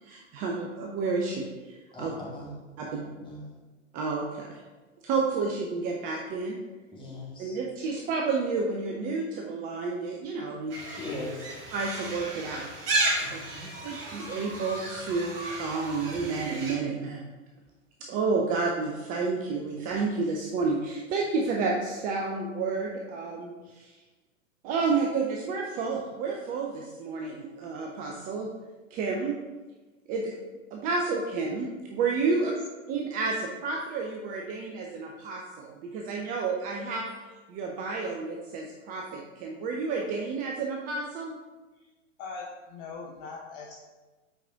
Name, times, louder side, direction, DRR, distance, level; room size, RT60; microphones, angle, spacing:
voice 1, 0.0-2.1 2.8-3.0 3.9-4.6 5.0-6.6 7.4-10.8 11.7-12.7 13.3-13.4 13.8-17.2 18.0-23.9 24.6-28.5 28.9-29.4 30.1-30.4 30.7-32.5 32.9-37.1 37.5-41.4, right 4 dB, 20° right, 0 dB, 0.5 m, -30 dB
voice 2, 1.9-2.6 2.8-3.5 6.9-7.6 10.9-11.6 13.2-13.7, left 1 dB, 15° left, -5 dB, 2.1 m, -40 dB
sound 1, 10.7-16.8, right 2 dB, 45° right, 1.7 m, -33 dB
voice 3, 42.2-43.8, left 4 dB, 30° left, -1 dB, 0.7 m, -40 dB
7.6 x 4.9 x 3.5 m, 1.2 s
figure-of-eight pair, 105°, 38 cm